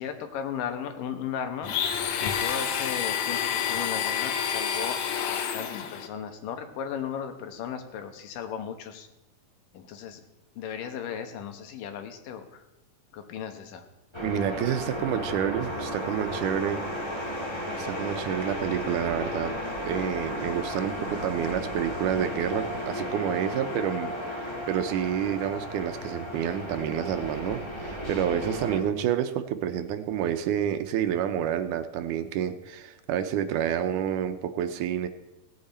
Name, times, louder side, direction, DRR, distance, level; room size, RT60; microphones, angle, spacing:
voice 1, 0.0-1.7 2.2-9.1 9.7-10.2 10.6-12.6 13.1-13.8, left 8 dB, 85° left, 7 dB, 2.7 m, -36 dB
Domestic sounds home sounds, 1.6-6.1, left 8 dB, 70° left, 2.0 m, -28 dB
sound 1, 14.1-28.8, left 1 dB, 15° left, 1.0 m, -34 dB
voice 2, 14.2-16.8 17.1-17.4 17.8-19.5 19.9-35.1, right 9 dB, 80° right, 9 dB, 2.1 m, -29 dB
17.0 x 8.7 x 4.2 m, 0.94 s
omnidirectional pair, 3.7 m